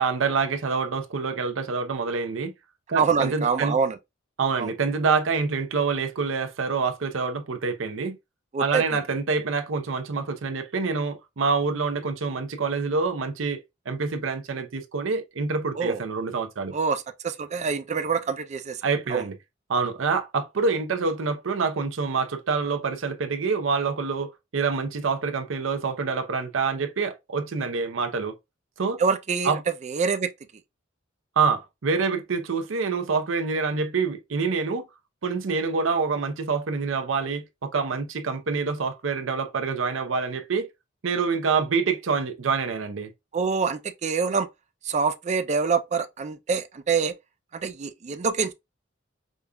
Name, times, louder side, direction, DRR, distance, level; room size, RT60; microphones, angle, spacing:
voice 1, 0.0-2.5 2.9-3.8 4.4-8.2 8.6-13.6 13.9-16.7 18.8-19.4 19.7-28.3 28.8-29.0 29.4-29.6 31.4-34.9 35.2-40.7 41.0-43.1, right 4 dB, 90° right, 0.6 m, -26 dB
voice 2, 3.0-4.0 4.6-4.7 8.5-9.0 15.8-16.0 16.7-18.8 19.1-19.3 29.0-30.3 43.3-44.5 44.8-47.1 47.5-48.5, right 5 dB, 35° right, 0.4 m, -25 dB
5.1 x 2.4 x 2.2 m
head